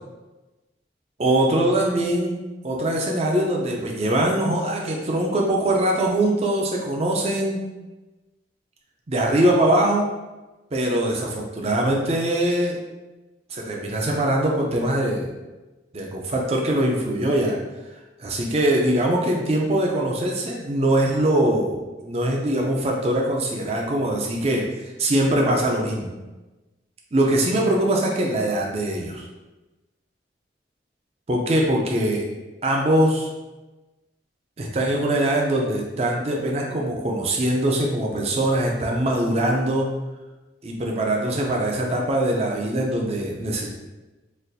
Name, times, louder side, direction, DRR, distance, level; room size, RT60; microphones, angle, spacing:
voice 1, 1.2-2.4 2.6-7.7 9.1-10.1 10.7-12.8 13.5-15.3 15.9-17.6 18.2-26.1 27.1-29.2 31.3-32.2 32.6-33.3 34.6-39.9 40.6-43.7, right 1 dB, 35° right, -1 dB, 0.5 m, -22 dB
4.1 x 2.4 x 2.6 m, 1.1 s
head